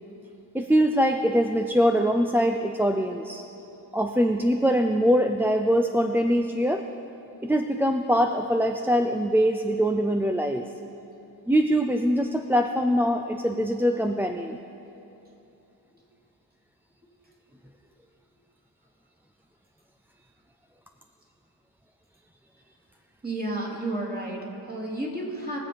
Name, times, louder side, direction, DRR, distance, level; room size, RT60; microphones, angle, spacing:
voice 1, 0.5-3.4 3.9-6.8 7.4-10.7 11.5-14.6, equal, 5° right, 4 dB, 0.5 m, -23 dB
voice 2, 23.2-25.6, right 1 dB, 25° right, -3 dB, 3.0 m, -31 dB
21.5 x 7.5 x 5.1 m, 2.9 s
cardioid pair, 85°, 38 cm